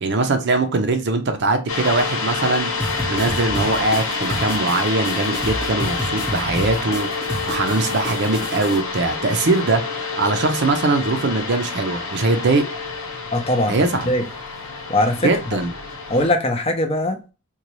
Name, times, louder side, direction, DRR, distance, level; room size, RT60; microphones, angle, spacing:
voice 1, 0.0-2.7 3.1-9.8 10.2-12.6 13.7-14.1 15.2-15.7, right 3 dB, 55° right, 0.5 m, -21 dB
sound 1, 1.7-16.3, left 4 dB, 90° left, 1.1 m, -28 dB
sound 2, 2.8-8.8, equal, 5° right, 0.9 m, -30 dB
voice 2, 13.3-14.3 14.9-15.6 16.1-17.3, left 1 dB, 30° left, 0.5 m, -21 dB
3.9 x 2.3 x 2.9 m
head